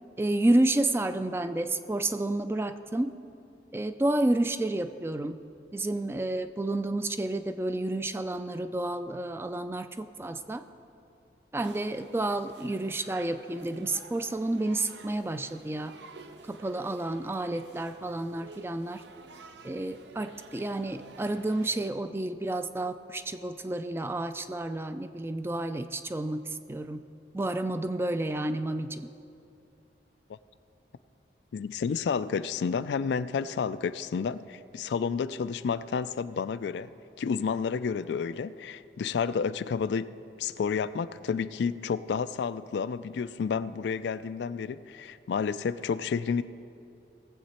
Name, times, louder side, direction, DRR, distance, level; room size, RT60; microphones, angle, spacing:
voice 1, 0.2-3.1 3.7-5.4 5.7-10.6 11.5-15.9 16.5-19.0 19.6-26.4 26.7-27.0 27.3-29.0, right 2 dB, 15° right, 10 dB, 0.3 m, -30 dB
sound 1, 11.6-21.9, right 4 dB, 80° right, 0.6 m, -51 dB
voice 2, 31.5-36.9 37.2-40.1 40.4-46.4, left 6 dB, 75° left, 14 dB, 0.3 m, -30 dB
19.0 x 7.6 x 4.3 m, 2.7 s
head